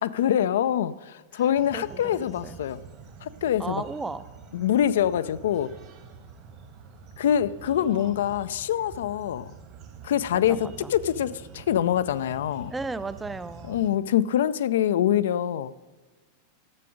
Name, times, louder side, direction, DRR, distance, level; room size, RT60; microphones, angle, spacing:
voice 1, 0.0-2.8 3.2-3.8 4.5-5.7 7.2-9.5 10.0-12.7 13.7-15.7, left 10 dB, 60° left, 0.4 m, -25 dB
sound 1, 1.6-13.9, right 6 dB, 40° right, 1.5 m, -46 dB
voice 2, 1.7-2.6 3.6-4.2 7.8-8.2 10.3-10.9 12.7-13.9, right 3 dB, 10° right, 0.5 m, -36 dB
13.5 x 7.5 x 5.0 m
figure-of-eight pair, 90°, 0 cm